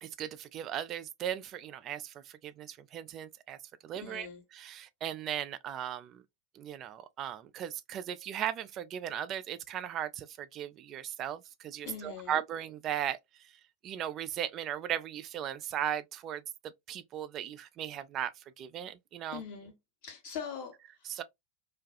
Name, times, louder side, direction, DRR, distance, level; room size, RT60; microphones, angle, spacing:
voice 1, 0.0-3.6 3.8-4.3 4.6-6.2 6.5-13.2 13.8-16.4 16.9-19.4 21.1-21.2, right 10 dB, 35° right, 0.3 m, -37 dB
voice 2, 3.9-4.4 11.8-12.4 19.3-19.7 20.0-21.2, left 7 dB, 50° left, 1.1 m, -42 dB
2.5 x 2.2 x 2.5 m
figure-of-eight pair, 90°, 0 cm